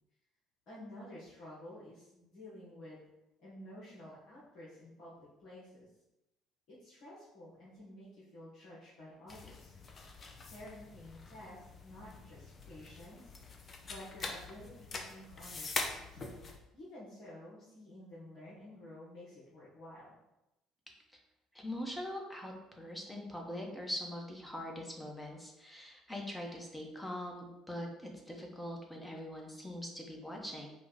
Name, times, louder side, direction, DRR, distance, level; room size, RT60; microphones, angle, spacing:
voice 1, 0.7-3.0 3.4-5.9 6.7-9.7 10.0-10.2 10.5-13.3 13.8-16.2 16.7-20.1, left 1 dB, 55° left, -8 dB, 1.4 m, -51 dB
sound 1, 9.3-16.6, left 3 dB, 35° left, 0.6 m, -44 dB
voice 2, 21.5-30.7, left 1 dB, 10° left, 0 dB, 1.1 m, -42 dB
4.9 x 2.4 x 4.0 m, 0.92 s
figure-of-eight pair, 55°, 0 cm